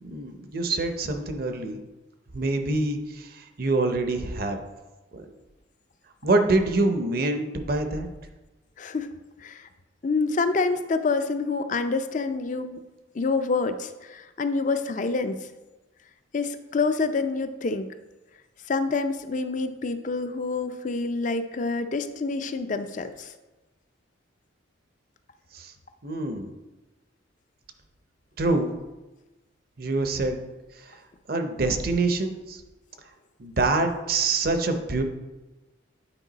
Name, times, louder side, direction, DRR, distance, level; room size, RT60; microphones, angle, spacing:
voice 1, 0.0-1.8 2.3-4.6 5.1-5.3 6.2-8.1 25.5-25.7 26.0-26.5 28.4-28.7 29.8-30.4 30.8-30.9 31.3-32.6 33.4-35.0, right 2 dB, 45° right, 7 dB, 0.6 m, -25 dB
voice 2, 8.8-9.1 9.4-9.7 10.0-12.8 13.1-15.4 16.3-17.9 18.7-23.3, left 4 dB, 40° left, 9 dB, 0.4 m, -27 dB
8.9 x 4.7 x 4.0 m, 1.1 s
head